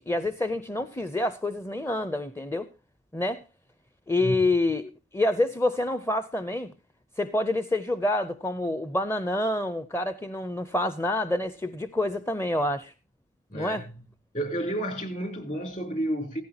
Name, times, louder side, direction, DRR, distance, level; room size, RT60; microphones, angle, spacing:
voice 1, 0.0-2.7 3.1-3.4 4.1-6.7 7.2-12.9 13.5-13.8, left 2 dB, 15° left, 0.6 m, -27 dB
voice 2, 13.5-13.9 14.3-16.4, right 1 dB, 40° left, 3.6 m, -31 dB
17.0 x 14.5 x 2.8 m
head